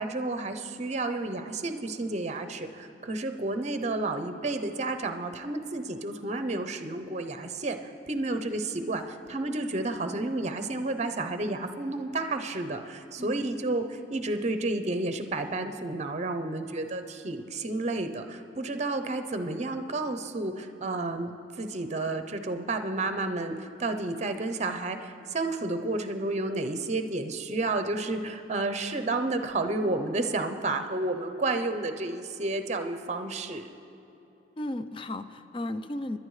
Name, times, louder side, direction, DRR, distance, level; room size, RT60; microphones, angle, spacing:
voice 1, 0.0-21.3 21.6-33.7, right 2 dB, 40° right, 8 dB, 0.7 m, -31 dB
voice 2, 34.6-36.2, left 1 dB, 30° left, 11 dB, 0.4 m, -34 dB
27.0 x 10.5 x 3.2 m, 2.9 s
head